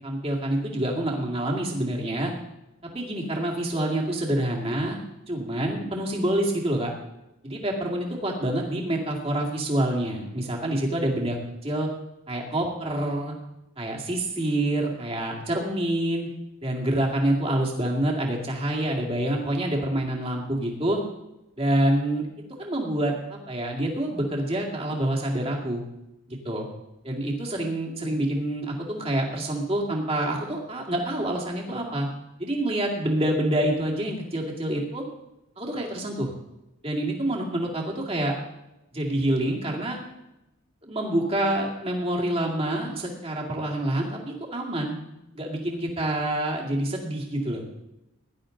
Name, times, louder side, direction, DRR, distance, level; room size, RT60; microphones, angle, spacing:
voice 1, 0.0-2.3 2.8-5.0 5.3-6.9 7.4-11.4 11.6-11.9 12.3-13.3 13.8-16.3 16.6-21.0 21.6-22.3 22.6-23.1 23.5-25.8 26.3-26.7 27.0-32.1 32.4-35.0 35.6-36.3 36.8-38.3 38.9-40.0 40.8-45.0 45.3-47.6, right 1 dB, 25° right, -1 dB, 2.2 m, -27 dB
16.5 x 11.5 x 3.9 m, 0.93 s
head